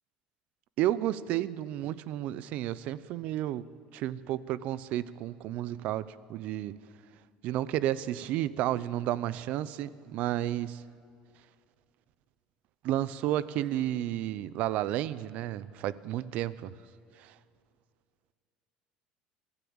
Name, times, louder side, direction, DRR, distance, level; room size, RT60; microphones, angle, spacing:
voice 1, 0.8-3.7 3.9-6.7 7.4-10.8 12.8-16.7 17.2-17.3, right 13 dB, 60° right, 18 dB, 0.7 m, -32 dB
23.5 x 14.0 x 8.7 m, 2.3 s
cardioid pair, 140°, 3 cm